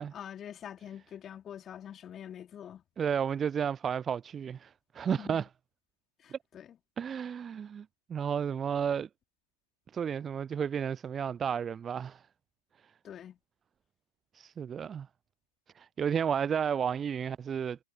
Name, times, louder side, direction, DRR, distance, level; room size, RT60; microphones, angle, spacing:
voice 1, 0.0-2.8 5.2-5.4 6.2-6.8 13.0-13.4, left 9 dB, 20° left, 4.9 m, -45 dB
voice 2, 3.0-5.5 6.3-6.4 7.0-9.1 9.9-12.2 14.3-15.1 15.7-17.8, right 7 dB, 15° right, 0.4 m, -32 dB
figure-of-eight pair, 105°, 0 cm